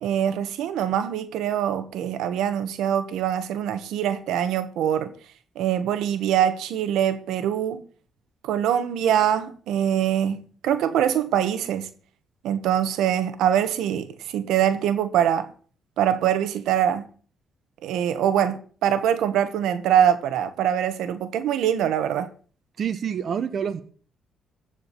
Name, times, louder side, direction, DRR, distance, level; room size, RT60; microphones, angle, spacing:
voice 1, 0.0-5.1 5.5-7.8 8.4-11.9 12.4-15.5 16.0-17.1 17.8-22.3, right 10 dB, 85° right, 1.3 m, -23 dB
voice 2, 22.8-23.8, right 8 dB, 55° right, 1.1 m, -27 dB
15.5 x 5.1 x 8.2 m
cardioid pair, 90°, 0 cm